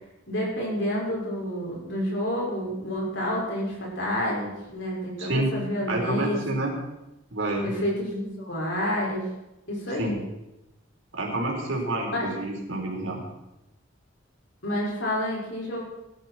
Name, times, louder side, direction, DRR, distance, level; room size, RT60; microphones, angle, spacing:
voice 1, 0.3-6.6 7.6-9.2 9.7-10.2 12.1-12.3 14.6-15.8, equal, 60° left, -3 dB, 5.9 m, -29 dB
voice 2, 5.2-5.5 5.9-6.7 7.3-7.7 10.0-10.1 11.1-13.2, right 2 dB, 80° right, -1 dB, 4.6 m, -28 dB
19.5 x 12.5 x 4.6 m, 0.95 s
head